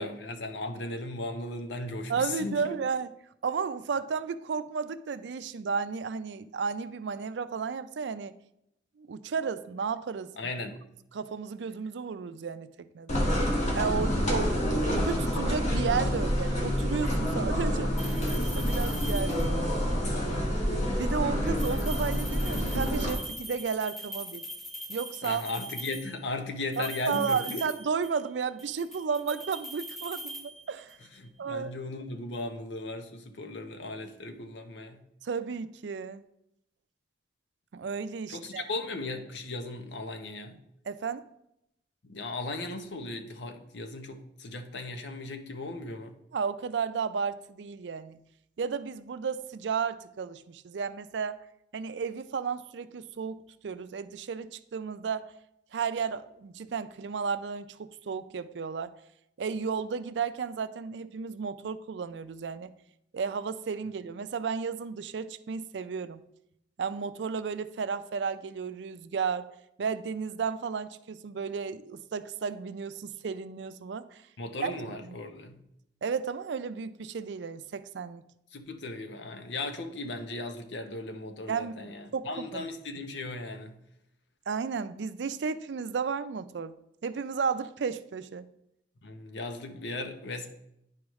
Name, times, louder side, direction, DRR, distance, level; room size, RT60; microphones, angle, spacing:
voice 1, 0.0-2.8 10.4-10.8 18.5-18.7 25.2-27.6 31.2-35.0 38.3-40.6 42.0-46.1 74.4-75.6 78.5-83.7 89.0-90.5, left 2 dB, 90° left, 6 dB, 0.8 m, -37 dB
voice 2, 2.1-3.1 3.4-8.3 9.0-10.5 11.1-13.2 13.8-17.9 18.5-19.8 21.0-24.4 24.9-25.4 26.8-31.0 31.4-31.7 35.2-36.2 37.7-38.7 40.9-41.2 46.3-48.2 48.6-51.4 51.7-55.3 55.7-58.9 59.4-62.7 63.1-66.2 66.8-69.5 69.8-74.2 74.6-74.8 75.0-75.1 76.0-78.2 81.5-82.7 84.5-86.8 87.0-88.5, right 5 dB, 85° right, 13 dB, 0.4 m, -33 dB
sound 1, 13.1-23.1, equal, 40° left, 1.5 m, -28 dB
sound 2, 18.0-19.7 21.5-26.2 26.7-28.3 28.6-31.1, right 1 dB, ahead, 0.6 m, -42 dB
10.5 x 4.8 x 3.1 m, 0.79 s
head